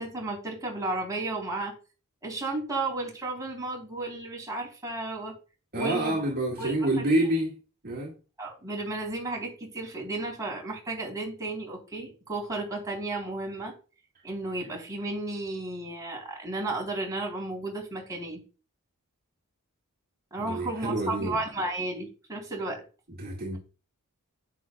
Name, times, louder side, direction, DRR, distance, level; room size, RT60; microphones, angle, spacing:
voice 1, 0.0-1.7 2.2-5.4 5.7-6.2 6.6-7.1 8.4-13.7 14.2-18.4 20.3-22.8, right 2 dB, 15° right, 3.7 m, -33 dB
voice 2, 5.7-7.6 7.8-8.1 20.5-21.4 23.2-23.6, right 1 dB, 45° right, 2.0 m, -27 dB
9.9 x 8.3 x 2.4 m
head